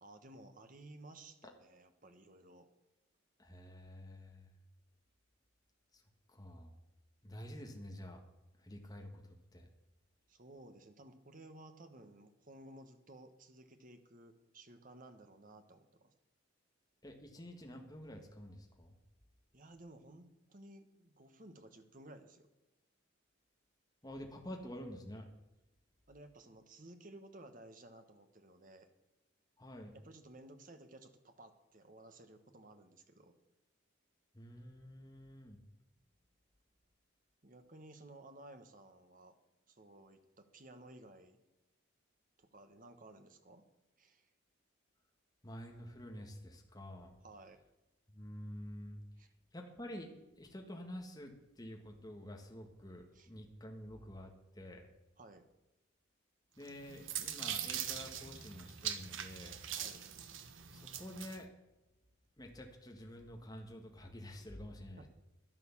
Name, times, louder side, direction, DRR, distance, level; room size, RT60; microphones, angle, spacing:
voice 1, 0.0-2.7 10.3-16.1 19.5-22.5 26.1-28.9 29.9-33.3 37.4-39.4 39.7-41.4 42.4-43.7 44.0-44.3 47.2-47.6 49.2-49.3 53.1-53.3 55.2-55.5 59.7-60.0 65.0-65.1, right 1 dB, 40° right, 7 dB, 1.4 m, -56 dB
voice 2, 3.4-4.4 6.3-6.7 7.2-8.2 8.6-9.1 9.5-9.7 17.0-18.9 24.0-25.3 29.6-29.9 34.3-35.6 45.4-47.2 48.1-49.0 49.5-50.1 50.4-54.3 54.6-54.9 56.6-59.6 60.7-61.5 62.4-65.1, equal, 20° left, 1 dB, 1.7 m, -49 dB
sound 1, 56.6-61.4, right 9 dB, 70° right, 1.2 m, -42 dB
11.0 x 10.5 x 7.3 m, 0.98 s
head